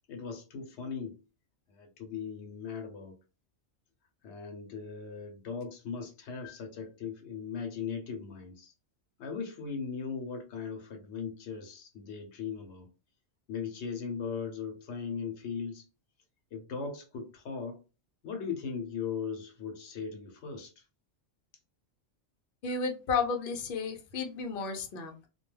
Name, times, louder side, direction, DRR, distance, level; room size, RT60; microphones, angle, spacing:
voice 1, 0.1-1.2 1.7-3.1 4.2-8.7 9.2-12.9 13.5-15.9 16.5-17.8 18.2-20.8, left 6 dB, 85° left, 1.0 m, -38 dB
voice 2, 22.6-25.3, left 5 dB, 60° left, 0.7 m, -33 dB
2.3 x 2.2 x 3.1 m
omnidirectional pair, 1.1 m